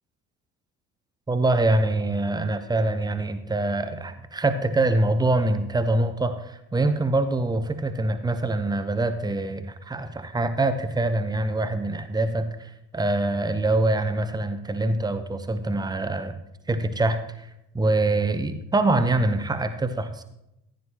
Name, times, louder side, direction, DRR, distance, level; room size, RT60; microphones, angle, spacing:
voice 1, 1.3-16.3 16.7-17.5 17.7-20.2, right 2 dB, 10° right, 10 dB, 0.8 m, -24 dB
15.0 x 10.5 x 2.9 m, 0.87 s
figure-of-eight pair, 55°, 47 cm